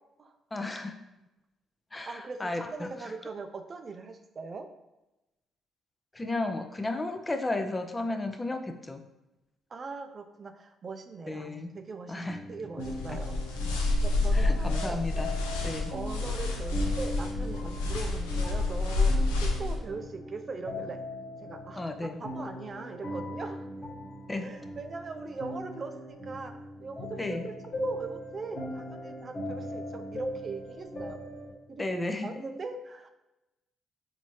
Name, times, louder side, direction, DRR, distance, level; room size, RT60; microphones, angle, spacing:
voice 1, 0.5-1.0 1.9-2.9 6.1-9.0 11.3-11.8 12.1-12.4 14.3-15.3 15.6-15.9 21.8-22.2 24.3-24.5 27.2-27.5 31.8-32.3, left 2 dB, 25° left, 6 dB, 0.5 m, -33 dB
voice 2, 2.1-4.7 9.7-13.8 14.0-15.1 15.9-21.0 21.4-23.7 24.3-26.5 26.8-31.2 31.7-33.1, right 4 dB, 45° right, 6 dB, 0.4 m, -41 dB
sound 1, 12.3-31.5, equal, 55° left, 1.2 m, -40 dB
sound 2, 12.8-19.8, left 2 dB, 85° left, 0.5 m, -28 dB
4.1 x 2.7 x 3.1 m, 0.96 s
hypercardioid pair, 50°, 0 cm